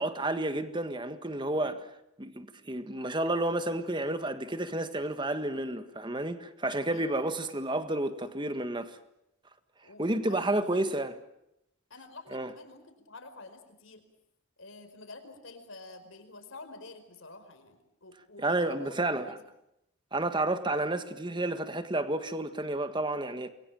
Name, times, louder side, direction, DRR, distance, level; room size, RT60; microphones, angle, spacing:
voice 1, 0.0-1.9 2.2-9.0 10.0-11.1 12.3-12.5 18.4-19.4 20.1-23.5, right 1 dB, 20° right, 1.6 m, -31 dB
voice 2, 9.8-10.9 11.9-14.0 14.6-19.4, left 2 dB, 65° left, 4.8 m, -49 dB
28.5 x 22.5 x 7.5 m
head